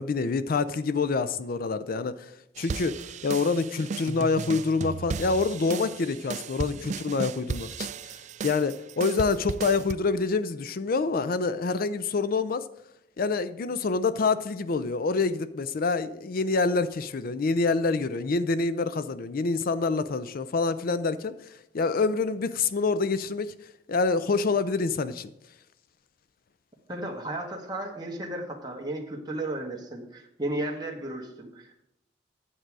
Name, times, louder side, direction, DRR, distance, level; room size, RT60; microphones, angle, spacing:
voice 1, 0.0-2.3 2.6-12.7 13.2-21.3 21.7-23.5 23.9-25.3, left 4 dB, 50° left, 14 dB, 0.5 m, -27 dB
sound 1, 2.6-9.9, right 5 dB, 40° right, 0.3 m, -35 dB
voice 2, 26.9-31.8, right 1 dB, 25° right, -1 dB, 1.4 m, -34 dB
9.1 x 7.5 x 4.7 m, 0.81 s
head